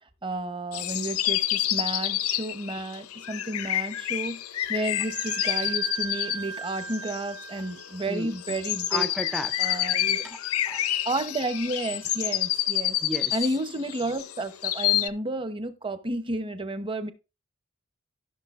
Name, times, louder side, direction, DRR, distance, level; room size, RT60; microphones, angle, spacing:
voice 1, 0.2-4.4 4.7-9.1 9.6-10.3 11.1-13.0 13.3-17.1, right 2 dB, 25° right, 0.8 m, -31 dB
sound 1, 0.7-15.1, left 13 dB, 85° left, 0.6 m, -28 dB
Wind instrument woodwind instrument, 4.8-12.2, right 8 dB, 55° right, 1.6 m, -41 dB
voice 2, 8.9-9.9 10.2-10.9 13.0-13.4, equal, ahead, 0.5 m, -35 dB
15.0 x 6.3 x 2.5 m
head